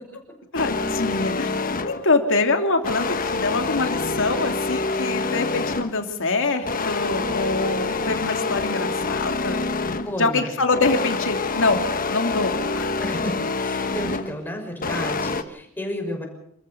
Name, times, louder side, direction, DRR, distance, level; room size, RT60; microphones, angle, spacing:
voice 1, 0.5-1.5 1.8-9.7 10.2-11.8 12.1-12.9, left 3 dB, 65° left, 5 dB, 2.9 m, -24 dB
sound 1, 0.6-2.1 2.8-6.1 6.7-10.2 10.7-14.4 14.8-15.4, left 3 dB, 40° left, 1.3 m, -26 dB
voice 2, 10.0-10.5 13.0-16.3, left 1 dB, 10° left, 2 dB, 6.0 m, -32 dB
27.5 x 14.5 x 6.9 m, 0.71 s
head